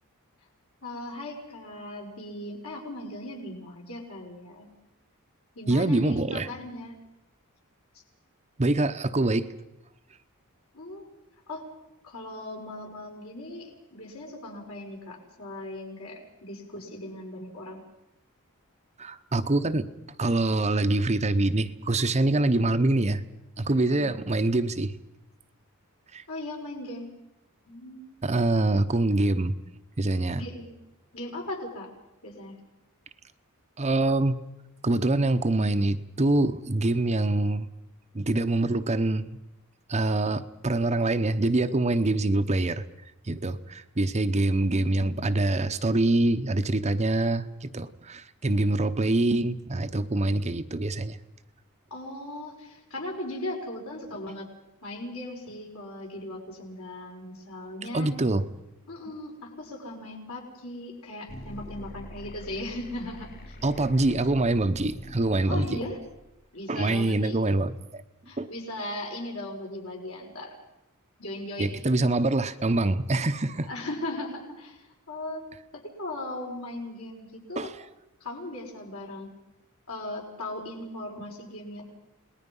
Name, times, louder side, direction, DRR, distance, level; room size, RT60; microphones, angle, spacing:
voice 1, 0.8-4.7 5.5-7.0 10.7-11.1 11.5-11.6 12.0-17.8 23.9-24.1 26.3-27.1 27.7-28.1 30.4-30.7 31.1-31.9 32.2-32.6 51.9-54.5 54.8-58.1 58.9-63.6 65.5-66.0 66.5-67.4 68.3-70.5 71.2-71.8 73.7-75.4 75.7-77.7 78.2-79.3 79.9-81.8, left 1 dB, 70° left, -1 dB, 6.1 m, -38 dB
voice 2, 5.7-6.5 8.6-9.5 19.0-19.9 20.2-23.2 23.6-25.0 26.1-26.2 28.2-29.5 30.0-30.4 33.8-34.4 34.8-37.7 38.1-39.3 39.9-42.8 43.3-51.2 57.9-58.5 63.6-65.7 66.7-68.0 68.4-68.5 71.6-73.7 77.6-77.8, right 2 dB, 30° right, 9 dB, 0.8 m, -25 dB
sound 1, 61.3-66.3, equal, 45° left, 3.6 m, -44 dB
29.5 x 20.0 x 5.5 m, 0.89 s
head